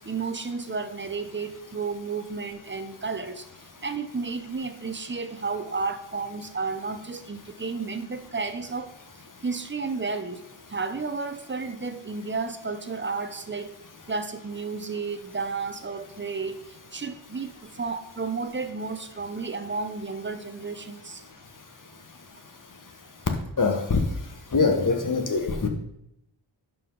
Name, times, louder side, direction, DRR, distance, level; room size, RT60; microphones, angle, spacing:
voice 1, 0.0-8.9 9.4-10.4 10.7-13.7 14.1-21.2, right 4 dB, 25° right, 10 dB, 0.7 m, -32 dB
voice 2, 23.6-24.0 24.5-25.7, left 4 dB, 40° left, 4 dB, 1.3 m, -23 dB
11.0 x 4.9 x 3.8 m, 0.80 s
wide cardioid pair, 80°, 46 cm